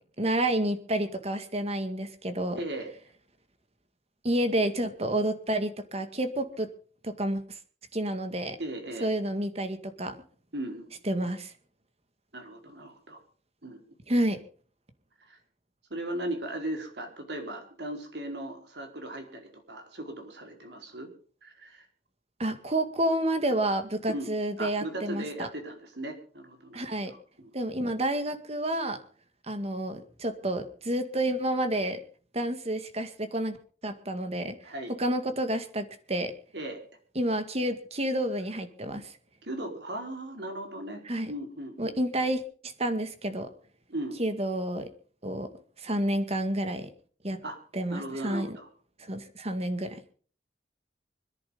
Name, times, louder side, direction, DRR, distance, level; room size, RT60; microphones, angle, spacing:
voice 1, 0.2-2.6 4.2-6.7 7.0-7.6 7.9-8.6 9.0-10.1 11.1-11.5 14.1-14.4 22.4-25.5 26.7-27.1 27.5-29.0 29.5-32.0 32.3-33.6 33.8-34.6 34.9-36.3 37.2-39.1 41.1-41.3 41.8-43.5 44.2-44.9 45.2-45.5 45.8-46.9 47.2-47.4 47.7-48.5 49.0-50.0, right 1 dB, 35° right, 9 dB, 2.1 m, -29 dB
voice 2, 2.5-2.9 8.6-9.1 10.5-10.9 12.3-13.2 13.6-13.8 15.3-15.4 15.9-21.1 21.4-21.8 24.1-24.3 24.6-27.5 34.6-34.9 36.5-36.8 39.4-41.0 41.3-41.9 43.9-44.2 47.4-47.6 47.9-48.7, right 1 dB, 65° right, 4 dB, 4.6 m, -37 dB
25.5 x 10.5 x 3.9 m, 0.43 s
head